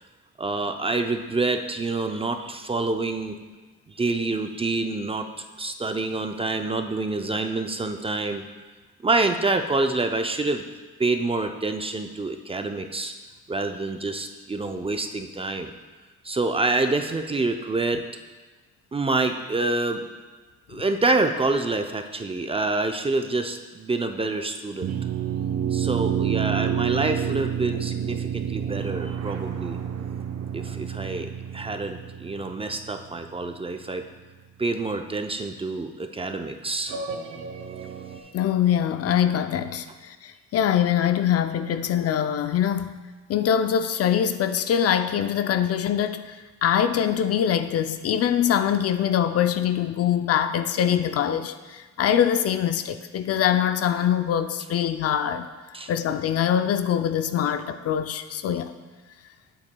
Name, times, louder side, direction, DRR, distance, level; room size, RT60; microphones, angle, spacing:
voice 1, 0.4-3.4 3.9-5.3 5.6-8.4 9.0-10.6 11.0-13.1 13.5-15.7 16.2-18.1 18.9-20.0 20.7-24.9 25.7-29.8 30.5-34.1 34.6-37.0 38.2-38.3 55.7-55.9, right 3 dB, 20° right, 6 dB, 0.4 m, -27 dB
sound 1, 24.8-33.5 36.9-38.2, right 9 dB, 55° right, 0.7 m, -29 dB
voice 2, 38.3-42.9 43.3-55.5 55.9-58.8, left 9 dB, 55° left, 10 dB, 0.4 m, -23 dB
8.6 x 8.0 x 2.2 m, 1.3 s
cardioid pair, 90°, 30 cm